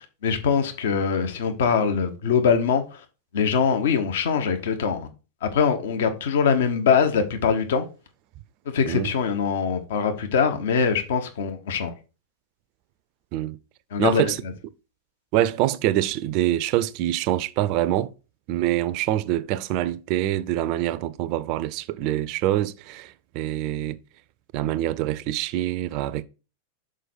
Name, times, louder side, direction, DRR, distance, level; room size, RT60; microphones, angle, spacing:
voice 1, 0.0-3.0 3.3-5.1 5.4-7.8 8.7-11.9 13.9-14.3, left 6 dB, 60° left, 1.0 m, -23 dB
voice 2, 14.0-14.4 15.3-18.1 18.5-24.0 24.5-26.2, right 14 dB, 45° right, 0.4 m, -25 dB
6.2 x 4.8 x 4.4 m
figure-of-eight pair, 90°, 0 cm